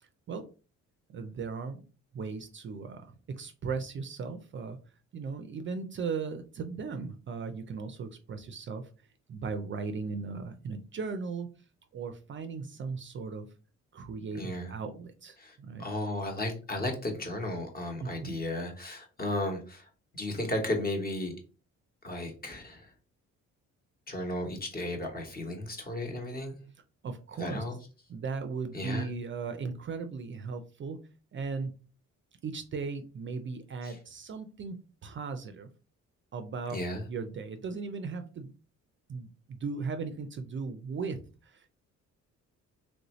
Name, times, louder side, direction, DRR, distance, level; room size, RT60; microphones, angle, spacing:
voice 1, 0.0-0.5 1.1-1.8 2.1-4.8 5.1-8.9 9.3-11.5 11.9-13.5 13.9-15.9 18.0-18.4 27.0-27.6 28.1-31.0 31.3-31.8 32.4-35.7 36.3-36.8 37.1-38.5 39.1-41.7, right 5 dB, 40° right, 8 dB, 0.4 m, -37 dB
voice 2, 14.3-14.7 15.4-19.9 20.1-21.3 22.0-22.9 24.1-26.6 27.4-27.8 28.7-29.1 33.8-33.9 36.7-37.0, left 1 dB, 30° left, 3 dB, 1.1 m, -34 dB
3.1 x 2.6 x 3.0 m, 0.35 s
cardioid pair, 90°, 30 cm